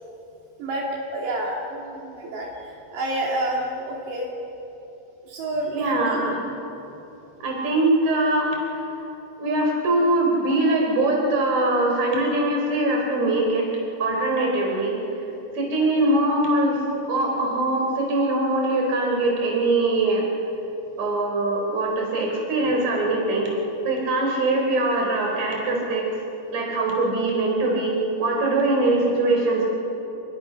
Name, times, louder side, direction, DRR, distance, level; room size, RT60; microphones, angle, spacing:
voice 1, 0.6-4.3 5.2-6.2 15.7-15.8, right 1 dB, 75° right, -2 dB, 4.5 m, -29 dB
voice 2, 5.7-6.4 7.4-8.9 9.4-13.7 14.0-15.0 15.5-20.3 21.0-23.5 23.8-26.2 26.5-29.7, right 2 dB, 45° right, 0 dB, 4.9 m, -22 dB
27.0 x 21.5 x 5.9 m, 2.9 s
omnidirectional pair, 5.1 m